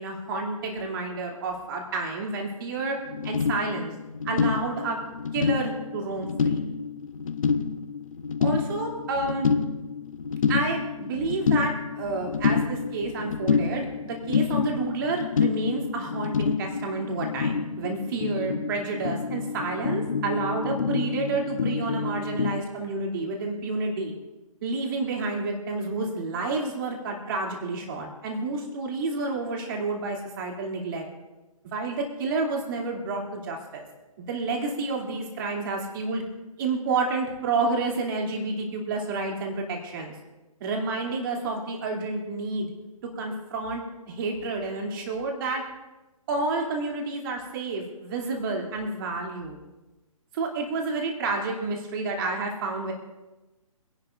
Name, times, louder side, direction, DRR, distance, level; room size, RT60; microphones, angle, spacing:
voice 1, 0.0-3.0 3.2-3.9 4.2-5.0 5.3-6.7 8.4-9.5 10.5-24.1 24.6-31.0 31.7-33.8 34.2-36.2 36.6-40.1 40.6-42.7 43.0-45.6 46.3-49.6 50.3-52.9, right 3 dB, 35° right, 0 dB, 2.9 m, -30 dB
sound 1, 2.8-2.9 3.1-22.6, left 5 dB, 65° left, 0.9 m, -28 dB
25.5 x 11.5 x 2.6 m, 1.1 s
figure-of-eight pair, 145°, 19 cm